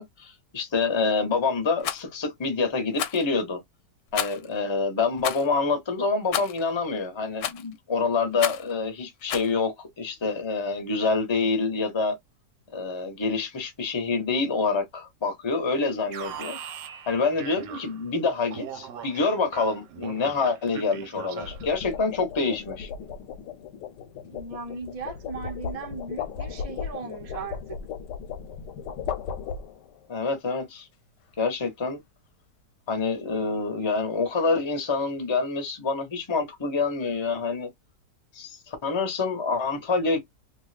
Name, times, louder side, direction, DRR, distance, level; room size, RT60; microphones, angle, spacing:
voice 1, 0.0-3.6 4.1-12.1 12.7-16.6 17.1-22.9 30.1-30.9 31.4-32.0 32.9-37.7 38.3-40.2, left 4 dB, 25° left, 0.6 m, -27 dB
Rattle, 1.8-2.0 2.9-3.3 4.1-4.5 5.2-5.5 6.3-6.6 7.4-7.7 8.4-8.7 9.3-9.5, left 10 dB, 70° left, 1.0 m, -30 dB
sound 1, 15.7-16.0 21.2-30.1, left 7 dB, 90° left, 1.2 m, -36 dB
Alarm, 16.1-18.1 18.5-21.8, right 8 dB, 90° right, 1.3 m, -40 dB
voice 2, 24.2-27.8, right 4 dB, 60° right, 0.3 m, -37 dB
2.8 x 2.3 x 3.2 m
omnidirectional pair, 1.8 m